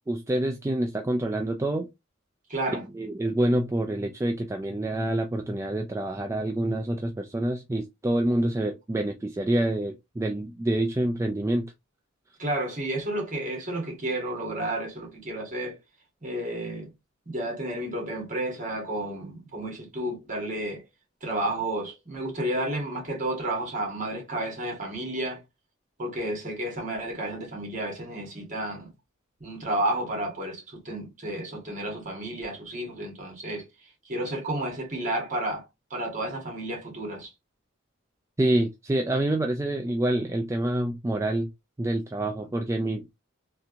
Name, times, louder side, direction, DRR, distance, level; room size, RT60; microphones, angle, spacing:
voice 1, 0.1-1.9 2.9-11.7 38.4-41.5 41.8-43.1, right 1 dB, 15° right, 0.3 m, -27 dB
voice 2, 2.5-2.8 12.4-15.8 16.2-16.9 17.3-20.8 21.2-25.4 26.0-28.9 29.4-33.6 34.0-35.6 35.9-37.3, right 1 dB, 40° right, 1.5 m, -31 dB
3.4 x 2.8 x 2.5 m
head